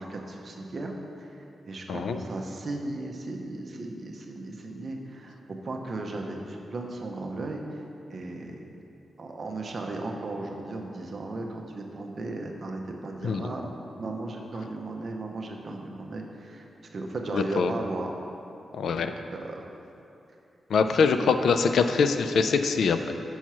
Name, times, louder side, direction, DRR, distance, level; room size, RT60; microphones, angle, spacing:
voice 1, 0.0-5.4 5.6-7.8 8.1-8.7 9.2-13.7 14.0-16.7 16.9-18.1 19.3-19.6 21.0-21.2, right 2 dB, 45° right, 2 dB, 0.6 m, -36 dB
voice 2, 1.9-2.2 13.2-13.5 17.3-17.7 18.7-19.1 20.7-23.1, left 5 dB, 80° left, 8 dB, 0.3 m, -23 dB
5.6 x 4.5 x 6.0 m, 2.7 s
wide cardioid pair, 150°, 0 cm